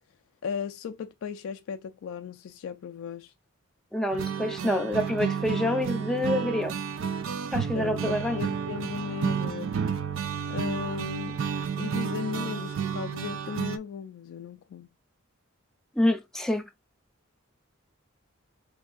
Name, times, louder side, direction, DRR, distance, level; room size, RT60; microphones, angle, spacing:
voice 1, 0.4-3.3 7.7-9.8 10.5-11.4 11.8-14.9, left 6 dB, 75° left, 0.3 m, -36 dB
voice 2, 3.9-6.7 7.5-8.4 16.0-16.6, left 1 dB, ahead, 0.4 m, -27 dB
sound 1, 4.1-13.8, right 7 dB, 70° right, 0.4 m, -31 dB
3.3 x 3.2 x 2.3 m
head